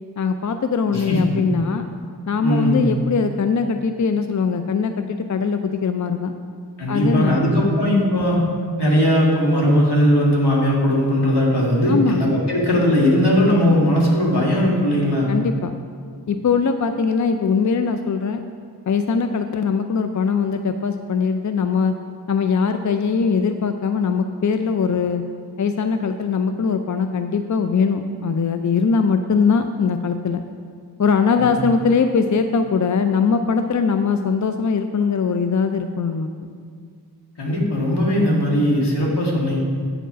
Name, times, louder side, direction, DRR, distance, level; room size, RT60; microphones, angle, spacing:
voice 1, 0.2-1.9 2.3-6.3 6.9-7.8 11.9-12.2 15.3-15.7 16.3-18.4 18.9-21.9 22.3-25.2 25.6-30.4 31.0-36.3, left 5 dB, 50° left, 7 dB, 0.4 m, -21 dB
voice 2, 0.9-1.4 2.4-2.8 6.8-8.4 8.8-15.3 31.4-31.5 37.4-39.6, equal, 80° left, -4 dB, 2.0 m, -18 dB
9.0 x 4.6 x 6.1 m, 2.1 s
wide cardioid pair, 45°, 40 cm